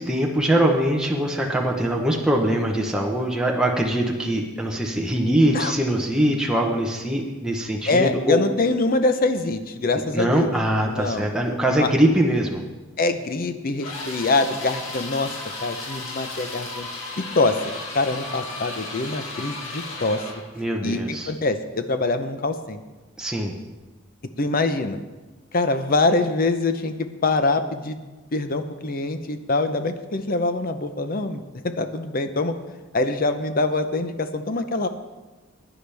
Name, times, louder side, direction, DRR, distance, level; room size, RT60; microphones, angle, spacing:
voice 1, 0.0-8.4 10.1-12.6 20.6-21.3 23.2-23.5, right 1 dB, 5° right, -1 dB, 0.9 m, -22 dB
voice 2, 7.9-10.5 10.9-11.3 11.7-11.9 13.0-15.3 15.6-16.9 17.2-20.2 20.8-22.8 24.4-25.0 25.5-28.0 28.3-32.5 32.9-34.9, left 3 dB, 45° left, 9 dB, 0.7 m, -24 dB
sound 1, 13.8-20.5, left 2 dB, 85° left, 2.2 m, -34 dB
15.5 x 9.9 x 3.4 m, 1.2 s
head